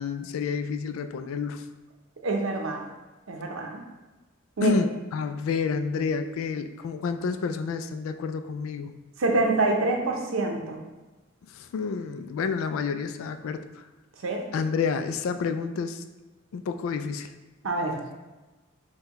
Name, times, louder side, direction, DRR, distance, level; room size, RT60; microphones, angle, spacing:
voice 1, 0.0-1.6 4.6-8.9 11.5-13.8 14.5-16.0 16.5-17.3, left 5 dB, 80° left, 10 dB, 0.3 m, -29 dB
voice 2, 2.2-2.8 3.3-3.8 4.6-4.8 9.2-10.8 14.2-14.4 17.6-18.0, right 2 dB, 85° right, 2 dB, 0.6 m, -26 dB
5.5 x 2.2 x 2.9 m, 1.2 s
head